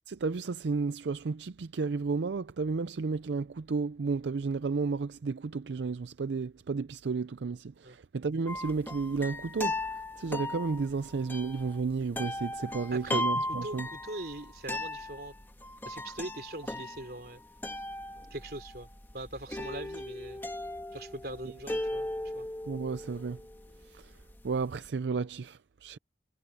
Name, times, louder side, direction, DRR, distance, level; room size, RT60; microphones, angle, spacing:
voice 1, 0.1-9.9 10.2-13.9 22.7-23.4 23.9-24.1 24.4-26.0, right 4 dB, 85° right, 0.5 m, -32 dB
sound 1, 8.5-24.9, left 1 dB, 10° left, 1.5 m, -37 dB
voice 2, 12.9-15.3 15.9-17.4 18.3-18.9 19.1-20.4 20.9-22.1 22.3-22.5, right 2 dB, 60° right, 3.8 m, -41 dB
head